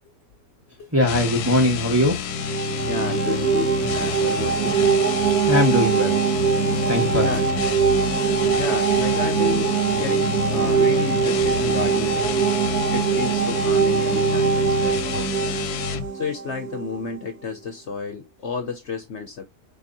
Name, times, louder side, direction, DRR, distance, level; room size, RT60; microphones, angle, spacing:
voice 1, 0.9-2.2 5.5-6.2 6.9-7.5, left 1 dB, 10° right, 1.4 m, -21 dB
sound 1, 1.0-16.1, left 8 dB, 85° left, 1.1 m, -28 dB
sound 2, 2.3-17.0, right 7 dB, 80° right, 1.5 m, -22 dB
voice 2, 2.9-4.8 7.2-7.5 8.5-12.5 12.9-15.6 16.1-19.4, left 5 dB, 55° left, 1.0 m, -32 dB
4.8 x 4.0 x 2.7 m
omnidirectional pair, 1.6 m